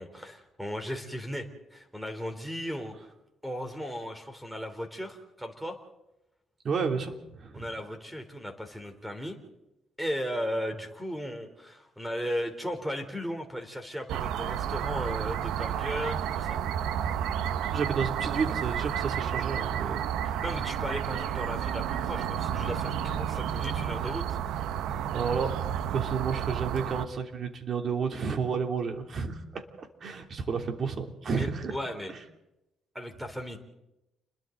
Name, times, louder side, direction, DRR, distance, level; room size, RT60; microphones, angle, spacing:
voice 1, 0.0-3.1 3.4-5.8 7.5-9.4 10.0-16.6 20.2-24.4 31.3-32.1 33.0-33.6, equal, ahead, 6 dB, 3.6 m, -36 dB
voice 2, 6.6-7.7 17.7-20.0 25.1-25.5 25.9-31.8, right 5 dB, 50° right, 4 dB, 3.0 m, -31 dB
sound 1, 14.1-27.1, right 9 dB, 90° right, 1.0 m, -31 dB
30.0 x 22.0 x 4.0 m, 0.90 s
cardioid pair, 100°, 0 cm